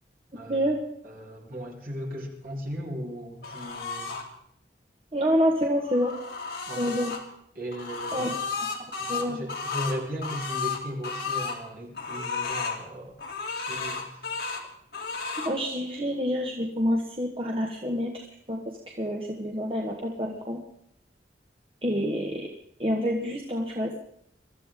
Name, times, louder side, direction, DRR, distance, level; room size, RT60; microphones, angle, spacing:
voice 1, 0.3-0.7 1.0-4.1 6.7-7.0 7.5-8.3 9.0-13.2 13.6-14.3, equal, 55° right, -2 dB, 4.4 m, -37 dB
sound 1, 3.4-4.2 5.6-7.2 7.7-11.6 11.9-12.8 13.2-14.6 14.9-15.5, left 5 dB, 70° left, 2.7 m, -33 dB
voice 2, 5.1-6.1 6.8-7.2 8.1-8.3 8.8-9.4 15.4-18.6 18.9-20.6 21.8-22.5 22.8-23.9, equal, 30° right, 0 dB, 1.6 m, -27 dB
23.0 x 14.0 x 3.8 m, 0.72 s
head